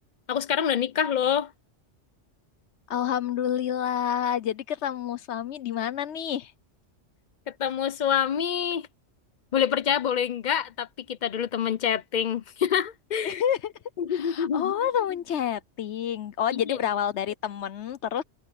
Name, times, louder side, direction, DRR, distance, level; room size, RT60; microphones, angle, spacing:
voice 1, 0.3-1.5 7.5-8.9 9.5-13.4 14.0-14.7 16.5-16.8, left 8 dB, 45° left, 0.7 m, -26 dB
voice 2, 2.9-6.5 13.2-13.7 14.1-18.2, left 9 dB, 70° left, 1.0 m, -28 dB
omnidirectional pair, 1.2 m